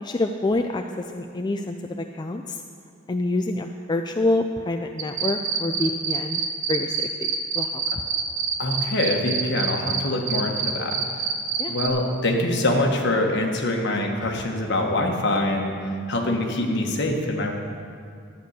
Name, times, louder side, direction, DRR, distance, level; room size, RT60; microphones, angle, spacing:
voice 1, 0.0-0.8 1.1-2.6 3.1-6.4 6.7-7.8 11.6-11.7, left 2 dB, 20° left, 4 dB, 0.4 m, -27 dB
sound 1, 5.0-10.0 10.3-11.9, right 7 dB, 70° right, 1.2 m, -25 dB
voice 2, 8.6-11.0 11.7-15.7 16.1-17.5, left 1 dB, 60° left, 2 dB, 1.5 m, -24 dB
12.0 x 8.3 x 6.6 m, 2.3 s
head